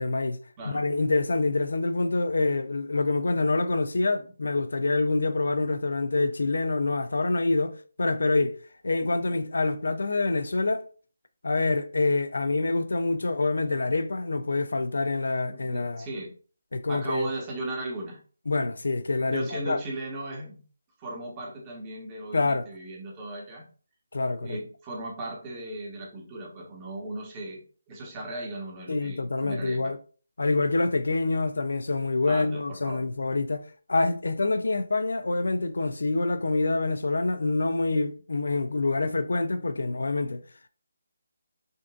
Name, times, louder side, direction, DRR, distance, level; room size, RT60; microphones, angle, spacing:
voice 1, 0.0-0.4 0.7-8.6 8.8-10.8 11.4-16.1 16.7-17.3 18.5-19.8 22.3-22.6 24.1-24.6 28.9-30.0 30.4-33.6 33.9-40.4, left 3 dB, 75° left, 0.4 m, -26 dB
voice 2, 15.5-16.3 16.9-18.2 19.3-20.6 21.0-23.6 24.4-29.9 32.3-33.0, right 2 dB, 25° right, 1.2 m, -37 dB
5.2 x 2.5 x 2.4 m
figure-of-eight pair, 155°, 0 cm